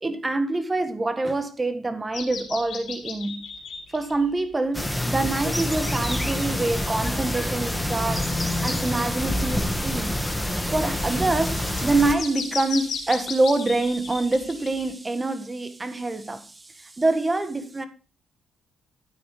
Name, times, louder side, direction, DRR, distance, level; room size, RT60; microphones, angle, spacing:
voice 1, 0.0-3.5 3.9-10.2 10.7-16.5 16.8-17.9, right 2 dB, 20° right, 1.7 m, -26 dB
sound 1, 2.1-4.3 4.9-5.0 5.9-6.0 7.9-14.9, left 6 dB, 70° left, 3.3 m, -37 dB
sound 2, 4.7-12.1, left 1 dB, 5° left, 1.8 m, -27 dB
12.5 x 9.4 x 3.4 m
cardioid pair, 90°, 0 cm